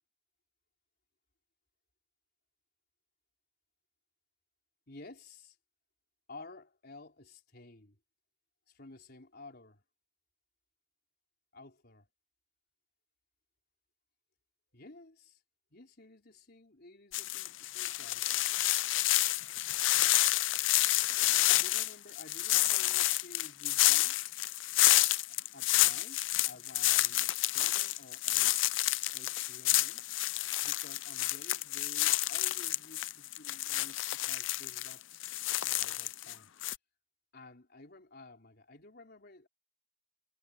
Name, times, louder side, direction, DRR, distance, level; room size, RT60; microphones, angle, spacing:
voice 1, 4.9-5.6 6.3-8.0 8.7-9.8 11.5-12.1 14.7-15.4 15.7-18.4 21.5-24.3 25.3-28.6 29.1-30.0 30.6-36.5 37.3-39.5, left 2 dB, 55° left, 4.3 m, -53 dB
sound 1, 17.1-36.3 36.6-36.8, left 16 dB, 80° left, 0.5 m, -29 dB
head